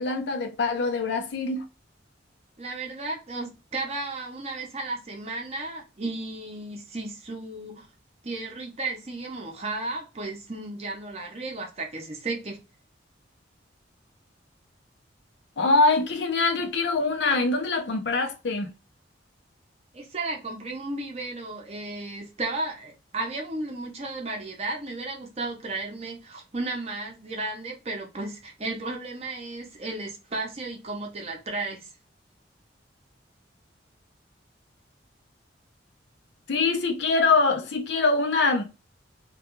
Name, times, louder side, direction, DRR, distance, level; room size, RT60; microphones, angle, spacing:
voice 1, 0.0-1.6 15.6-18.7 36.5-38.6, left 3 dB, 65° left, 0.5 m, -24 dB
voice 2, 2.6-7.9 8.2-12.6 19.9-31.9, right 2 dB, 35° right, 0.6 m, -34 dB
2.3 x 2.2 x 2.9 m
head